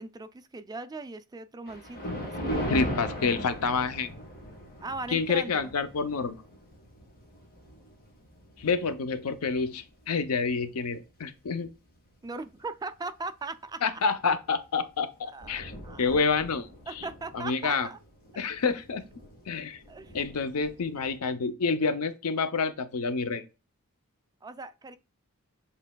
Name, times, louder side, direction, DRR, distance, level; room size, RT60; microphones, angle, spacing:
voice 1, 0.0-2.7 4.8-5.7 12.2-14.0 15.3-16.3 16.9-18.0 19.9-20.2 24.4-25.0, right 3 dB, 15° right, 0.3 m, -39 dB
Thunder, 1.7-10.2 10.7-10.9 11.6-11.7 12.1-12.2 14.4-14.6 14.9-15.0 15.2-21.2, equal, 45° left, 1.5 m, -39 dB
voice 2, 2.7-4.1 5.1-6.4 8.6-11.7 13.8-15.7 16.0-16.7 17.3-17.9 18.4-19.0 19.5-19.8 20.1-23.4, left 4 dB, 75° left, 0.6 m, -28 dB
7.3 x 3.3 x 2.2 m
head